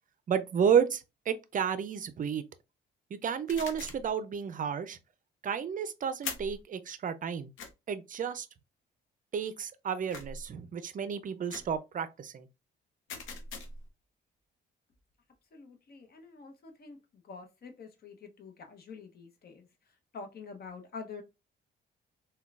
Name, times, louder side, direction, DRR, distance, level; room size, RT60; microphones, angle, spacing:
voice 1, 0.3-2.4 3.2-5.0 5.4-7.5 7.9-8.5 9.3-12.5, right 7 dB, 45° right, 0.5 m, -31 dB
sound 1, 3.5-4.1 6.2-6.6 7.6-7.7 10.1-10.5 11.5-11.8 13.1-13.9, left 4 dB, 80° left, 0.8 m, -41 dB
voice 2, 15.5-17.0 17.3-19.7 20.1-21.2, left 5 dB, 50° left, 0.8 m, -46 dB
3.7 x 2.2 x 2.3 m
cardioid pair, 90°, 20 cm